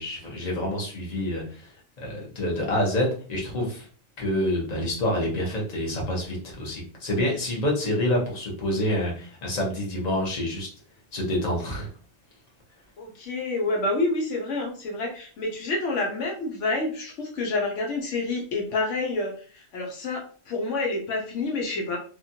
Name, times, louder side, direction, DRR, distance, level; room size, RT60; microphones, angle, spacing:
voice 1, 0.0-3.9 4.2-10.7 11.1-11.9, left 1 dB, 35° left, -2 dB, 1.0 m, -27 dB
voice 2, 13.0-22.0, left 2 dB, 75° left, 1 dB, 1.0 m, -28 dB
3.0 x 2.4 x 2.6 m, 0.42 s
omnidirectional pair, 1.3 m